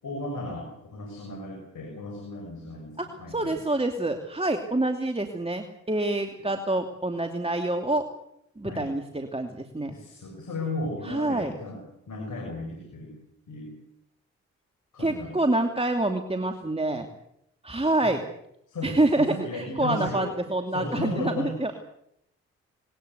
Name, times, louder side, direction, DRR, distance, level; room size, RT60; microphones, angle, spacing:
voice 1, 0.0-3.6 6.4-6.5 8.6-8.9 9.9-13.1 13.5-13.7 14.9-15.4 18.0-18.2 18.7-20.3 20.7-21.5, left 2 dB, 75° left, 1 dB, 6.5 m, -35 dB
voice 2, 3.0-8.0 8.6-10.0 11.0-11.5 15.0-17.1 17.6-18.2 18.8-21.7, right 2 dB, 20° right, 5 dB, 2.7 m, -27 dB
20.5 x 19.5 x 8.2 m, 0.78 s
supercardioid pair, 40°, 31 cm